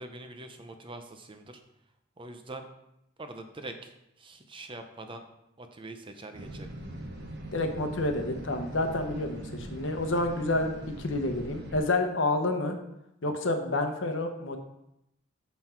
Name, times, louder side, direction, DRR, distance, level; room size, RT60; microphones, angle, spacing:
voice 1, 0.0-1.6 2.2-2.6 3.2-5.2 5.6-6.7 13.2-13.4, right 2 dB, 25° right, 6 dB, 0.6 m, -44 dB
sound 1, 6.3-11.8, right 1 dB, 60° right, 1.1 m, -41 dB
voice 2, 7.5-10.7 11.0-12.7 13.2-14.6, left 2 dB, 75° left, 6 dB, 0.9 m, -29 dB
6.2 x 5.7 x 4.4 m, 0.82 s
head